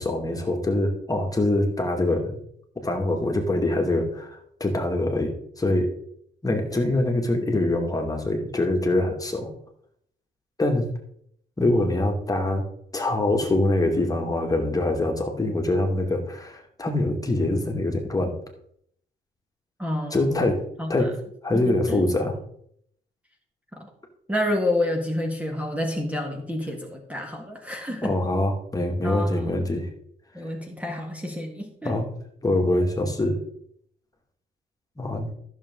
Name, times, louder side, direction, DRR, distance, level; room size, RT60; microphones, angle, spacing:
voice 1, 0.0-2.4 2.8-5.9 6.4-9.5 10.6-10.9 11.6-12.6 12.9-18.4 20.1-20.6 20.9-21.1 21.4-22.3 27.9-29.9 31.8-32.1 32.4-33.4 35.0-35.3, left 1 dB, 20° left, 2 dB, 2.2 m, -24 dB
voice 2, 19.8-20.4 20.8-21.1 21.5-22.0 23.7-23.9 24.3-28.2 29.0-29.5 30.3-32.0, left 1 dB, 5° right, 2 dB, 1.7 m, -29 dB
14.0 x 6.8 x 3.8 m, 0.70 s
cardioid pair, 90°, 20 cm